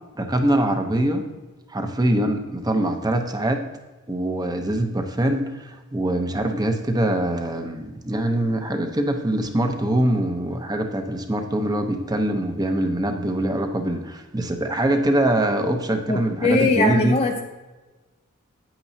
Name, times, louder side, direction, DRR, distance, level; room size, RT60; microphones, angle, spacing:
voice 1, 0.1-1.2 1.7-3.7 4.1-17.2, right 1 dB, 20° right, 5 dB, 0.8 m, -23 dB
voice 2, 16.1-17.4, left 2 dB, 30° left, 2 dB, 0.6 m, -21 dB
9.4 x 8.8 x 2.8 m, 1.2 s
head